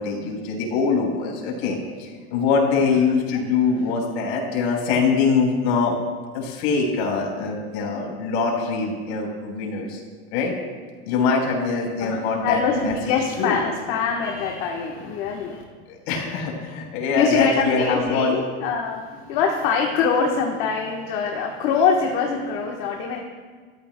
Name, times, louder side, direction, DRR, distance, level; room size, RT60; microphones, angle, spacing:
voice 1, 0.0-6.0 6.3-10.0 10.3-10.6 11.0-12.9 13.4-13.6 15.9-18.4, left 4 dB, 90° left, 0 dB, 4.0 m, -23 dB
voice 2, 12.0-15.6 17.1-23.2, left 5 dB, 50° left, 1 dB, 1.2 m, -24 dB
27.5 x 14.0 x 2.2 m, 1.5 s
cardioid pair, 180°, 32 cm